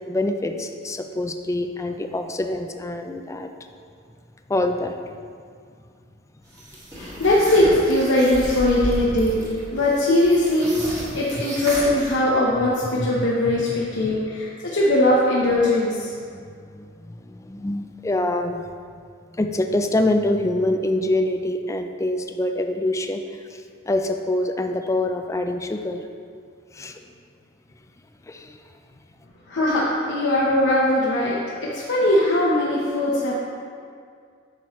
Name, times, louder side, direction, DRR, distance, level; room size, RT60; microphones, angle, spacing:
voice 1, 0.1-3.5 4.5-5.0 13.2-13.8 16.3-18.6 19.4-23.2 23.9-26.0 26.7-27.0 28.3-28.6 30.7-30.8, left 1 dB, 15° left, 6 dB, 0.4 m, -25 dB
sound 1, 6.5-12.1, equal, 20° right, 1.4 m, -33 dB
voice 2, 6.9-16.1 29.5-33.3, left 1 dB, 65° left, -6 dB, 0.9 m, -20 dB
8.7 x 5.8 x 3.1 m, 2.2 s
head